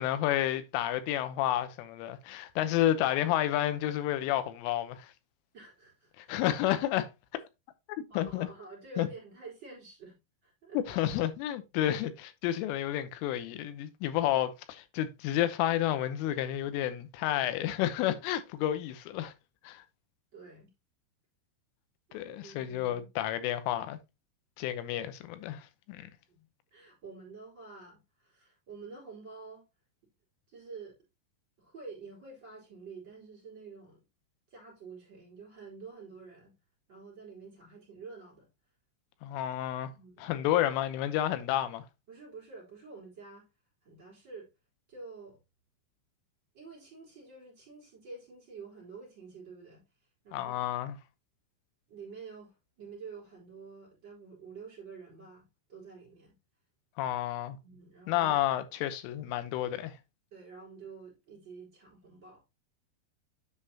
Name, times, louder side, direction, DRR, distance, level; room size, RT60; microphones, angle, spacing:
voice 1, 0.0-5.1 6.2-7.1 8.0-8.5 9.0-9.1 10.8-19.3 19.7-19.8 22.1-24.0 24.6-26.1 39.2-39.9 40.2-41.8 50.3-51.0 57.0-57.6 58.1-59.9, left 12 dB, 85° left, 3.4 m, -30 dB
voice 2, 5.5-6.3 8.1-10.2 10.4-11.0 20.3-20.7 22.1-23.1 26.3-26.4 26.7-29.6 30.5-31.0 31.6-34.0 34.5-36.5 36.9-38.5 39.9-40.4 42.1-43.5 43.8-44.5 44.9-45.4 46.5-49.8 50.2-50.7 51.9-56.4 57.6-58.4 60.3-62.5, right 4 dB, 25° right, 4.6 m, -48 dB
9.8 x 5.6 x 2.8 m
omnidirectional pair, 5.6 m